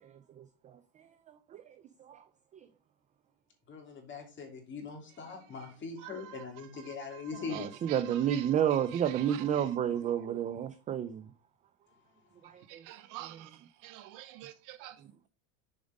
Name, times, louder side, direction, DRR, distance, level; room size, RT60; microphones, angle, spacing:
voice 1, 0.3-2.2 6.0-6.1 7.5-11.3 12.4-12.8, right 9 dB, 20° right, 0.3 m, -32 dB
voice 2, 3.7-7.7, left 5 dB, 25° left, 3.0 m, -41 dB
voice 3, 5.6-9.8 10.1-10.2 12.7-15.3, right 14 dB, 50° right, 0.7 m, -48 dB
7.1 x 5.0 x 5.2 m
supercardioid pair, 130°, 42 cm